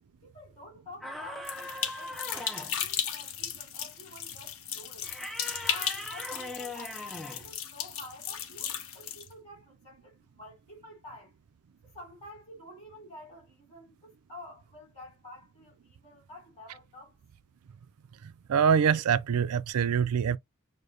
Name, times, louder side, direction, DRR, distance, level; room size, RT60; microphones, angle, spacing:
voice 1, 0.2-5.1 5.7-11.3 11.8-17.2, left 1 dB, 30° left, 3.5 m, -49 dB
sound 1, 1.0-2.8 5.0-7.5, left 1 dB, ahead, 0.3 m, -40 dB
sound 2, 1.4-9.3, left 9 dB, 75° left, 0.7 m, -36 dB
voice 2, 18.2-20.4, right 7 dB, 85° right, 0.4 m, -25 dB
6.4 x 2.2 x 2.6 m
head